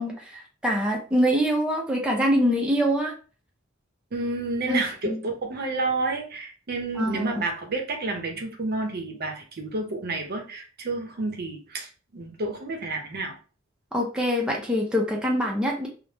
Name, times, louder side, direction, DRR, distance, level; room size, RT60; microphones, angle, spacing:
voice 1, 0.0-3.1 4.7-4.8 5.1-5.2 7.0-7.4 13.9-15.9, equal, 5° right, -1 dB, 0.4 m, -24 dB
voice 2, 4.1-13.3, right 2 dB, 50° right, 4 dB, 0.6 m, -30 dB
3.3 x 2.0 x 2.7 m, 0.37 s
head